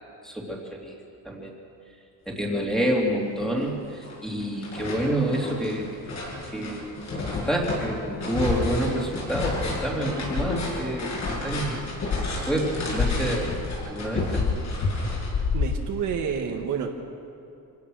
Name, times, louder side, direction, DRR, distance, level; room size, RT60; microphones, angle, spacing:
voice 1, 0.2-0.9 1.2-1.5 2.3-5.9 6.5-11.8 12.2-13.6 13.9-14.4, right 1 dB, ahead, -2 dB, 3.0 m, -28 dB
sound 1, 3.0-3.1 3.4-4.1 4.4-16.1, left 3 dB, 45° left, 7.4 m, -29 dB
voice 2, 15.5-16.9, right 7 dB, 50° right, 2 dB, 1.7 m, -29 dB
25.5 x 17.5 x 6.4 m, 2.6 s
cardioid pair, 160°, 38 cm